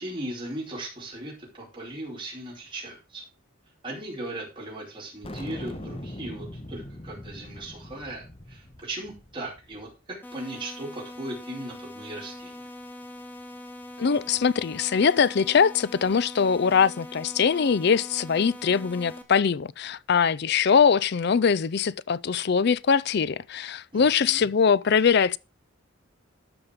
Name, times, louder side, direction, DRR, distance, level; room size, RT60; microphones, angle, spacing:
voice 1, 0.0-3.2 3.8-12.7 23.9-24.5, right 1 dB, 25° right, 4.5 m, -38 dB
sound 1, 5.2-9.9, left 1 dB, 25° left, 1.3 m, -41 dB
sound 2, 10.2-19.2, left 1 dB, 10° left, 1.5 m, -42 dB
voice 2, 14.0-25.4, left 6 dB, 50° left, 0.4 m, -22 dB
13.0 x 5.3 x 5.1 m
head